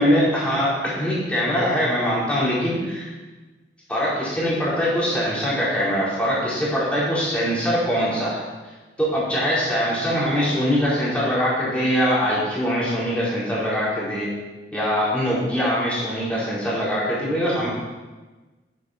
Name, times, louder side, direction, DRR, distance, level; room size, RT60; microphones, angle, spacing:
voice 1, 0.0-3.1 3.9-8.4 9.0-14.3 14.7-17.7, equal, 5° left, -8 dB, 4.1 m, -22 dB
9.6 x 8.4 x 5.7 m, 1.2 s
head